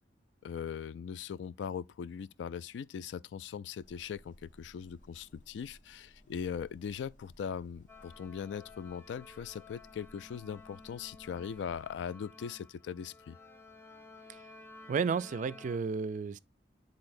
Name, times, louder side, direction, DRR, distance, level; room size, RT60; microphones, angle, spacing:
voice 1, 0.4-13.4, left 7 dB, 70° left, 0.3 m, -40 dB
sound 1, 3.8-12.1, equal, 45° left, 1.0 m, -61 dB
sound 2, 7.9-15.8, left 3 dB, 15° left, 0.5 m, -54 dB
voice 2, 14.9-16.4, right 5 dB, 45° right, 0.3 m, -32 dB
9.7 x 4.0 x 2.6 m
head